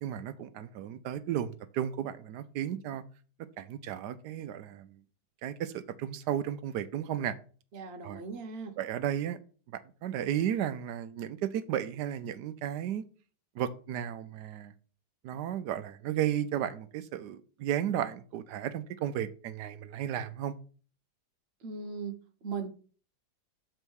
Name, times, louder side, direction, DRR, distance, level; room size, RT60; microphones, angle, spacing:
voice 1, 0.0-3.0 3.6-4.9 5.4-7.3 8.0-8.2 8.8-9.4 9.7-13.0 13.6-14.7 15.2-20.5, right 10 dB, 75° right, 1.1 m, -34 dB
voice 2, 7.7-8.8 21.6-22.7, right 5 dB, 45° right, 1.0 m, -38 dB
6.9 x 4.5 x 6.2 m
omnidirectional pair, 2.0 m